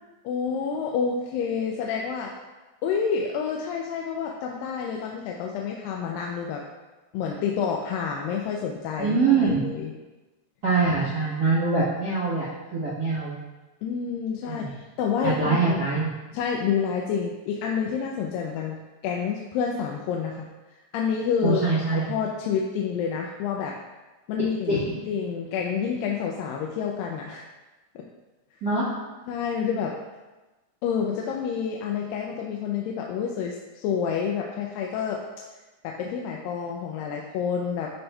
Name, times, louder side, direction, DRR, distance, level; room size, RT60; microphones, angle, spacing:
voice 1, 0.2-2.3 2.8-6.6 7.1-9.9 13.8-15.8 16.3-18.8 19.0-20.5 20.9-21.6 21.9-23.8 24.3-27.4 28.0-28.1 29.3-29.9 30.8-35.2 35.8-37.9, left 6 dB, 80° left, 0 dB, 2.2 m, -28 dB
voice 2, 9.0-9.6 10.6-13.4 14.5-14.7 15.4-16.1 21.4-22.1 24.7-24.8 28.6-28.9, right 4 dB, 75° right, -8 dB, 0.9 m, -24 dB
12.0 x 4.3 x 2.3 m, 1.1 s
omnidirectional pair, 4.2 m